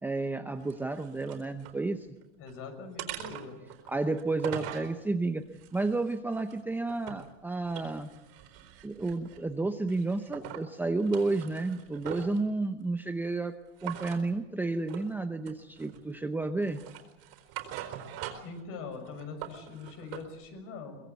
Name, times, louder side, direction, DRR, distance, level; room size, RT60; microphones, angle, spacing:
voice 1, 0.0-2.1 3.9-5.4 5.7-8.1 8.8-13.5 13.8-16.8, right 3 dB, 5° right, 7 dB, 0.8 m, -31 dB
sound 1, 0.6-1.8 2.2-2.6 3.0-4.9 5.5-7.3 7.6-9.5 9.9-10.7 11.0-12.4 13.8-14.2 14.9-15.1 15.5-16.2 16.6-18.6 18.9-20.3, right 11 dB, 50° right, 4.3 m, -43 dB
voice 2, 2.4-3.6 18.4-21.0, left 4 dB, 45° left, 6 dB, 6.5 m, -42 dB
23.5 x 21.0 x 8.3 m, 0.98 s
supercardioid pair, 135°, 31 cm